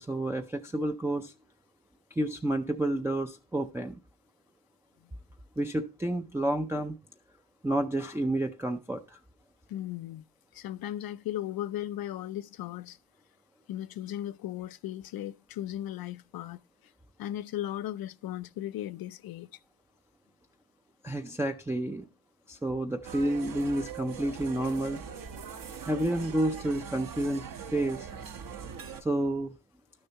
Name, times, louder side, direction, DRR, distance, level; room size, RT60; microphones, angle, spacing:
voice 1, 0.0-1.3 2.2-4.0 5.6-6.9 7.6-9.2 21.0-22.1 22.5-25.0 25.9-28.1 29.0-29.5, right 1 dB, 5° right, 0.5 m, -30 dB
voice 2, 9.7-10.2 10.5-13.0 13.7-16.6 17.2-19.5, left 12 dB, 55° left, 0.5 m, -36 dB
sound 1, 23.0-29.0, right 7 dB, 50° right, 1.0 m, -41 dB
12.0 x 6.6 x 2.9 m
cardioid pair, 95°, 43 cm